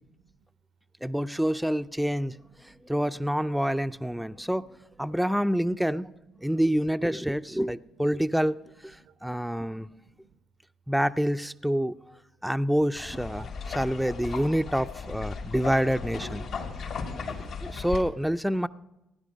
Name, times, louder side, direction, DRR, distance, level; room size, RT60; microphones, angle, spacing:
voice 1, 1.0-4.7 5.0-6.1 6.4-8.6 8.8-9.9 10.9-11.9 12.4-16.4 17.4-18.7, equal, 5° right, 0.4 m, -27 dB
voice 2, 4.3-4.6 6.4-6.5 9.0-9.1 9.7-10.2 13.3-13.7 15.3-15.5 16.5-17.8, right 6 dB, 75° right, 0.7 m, -59 dB
sound 1, 13.0-18.0, left 5 dB, 75° left, 2.8 m, -36 dB
16.5 x 9.9 x 5.1 m
supercardioid pair, 60°, 0 cm